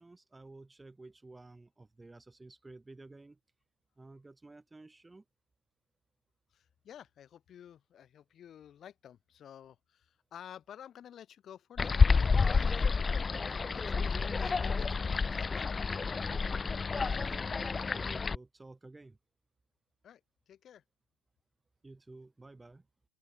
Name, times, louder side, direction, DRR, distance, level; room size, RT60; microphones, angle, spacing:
voice 1, 0.0-3.4 4.0-5.2 16.9-19.2 21.8-22.9, right 2 dB, 10° right, 4.3 m, -52 dB
voice 2, 6.5-15.8 20.0-20.2 20.5-20.8, left 9 dB, 40° left, 6.1 m, -52 dB
sound 1, 11.8-18.4, left 4 dB, 20° left, 0.7 m, -29 dB
open air
hypercardioid pair, 90°, 0 cm